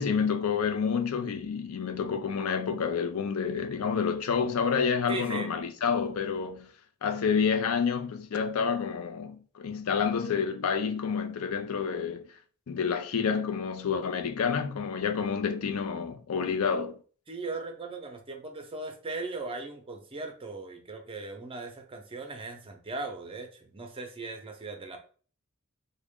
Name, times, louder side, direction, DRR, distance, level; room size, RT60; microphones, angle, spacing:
voice 1, 0.0-6.7 7.0-12.3 12.7-17.0, left 6 dB, 85° left, 0.4 m, -29 dB
voice 2, 5.1-5.5 17.3-25.0, right 3 dB, 25° right, 0.5 m, -38 dB
3.5 x 2.1 x 3.5 m
head